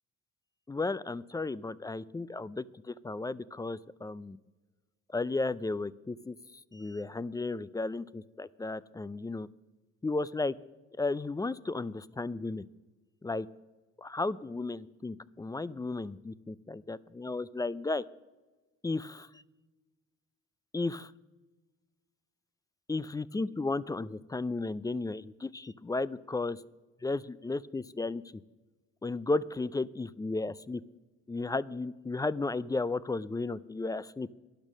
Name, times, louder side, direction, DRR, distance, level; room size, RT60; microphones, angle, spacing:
voice 1, 0.7-4.4 5.1-6.4 6.7-9.5 10.0-10.5 11.0-12.6 13.2-13.5 14.0-18.0 18.8-19.3 20.7-21.1 22.9-26.6 27.0-28.4 29.0-30.8 31.3-34.3, left 3 dB, 15° left, 19 dB, 0.3 m, -34 dB
12.0 x 11.0 x 6.2 m, 1.2 s
cardioid pair, 90°, 30 cm